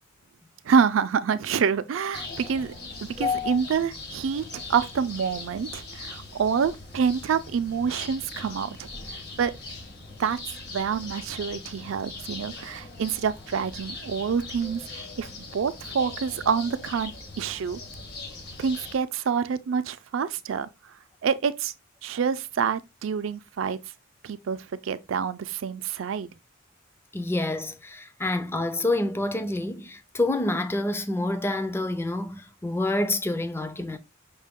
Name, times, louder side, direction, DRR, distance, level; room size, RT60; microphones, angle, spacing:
voice 1, 0.6-2.7 3.0-9.5 10.2-10.4 10.7-17.8 18.6-20.7 21.2-21.7 22.0-23.8 24.2-26.3, right 6 dB, 70° right, 0.4 m, -27 dB
sound 1, 2.1-19.0, left 3 dB, 55° left, 1.2 m, -41 dB
voice 2, 3.2-3.6 27.1-34.0, left 2 dB, 10° left, 0.4 m, -27 dB
5.4 x 2.2 x 3.5 m
head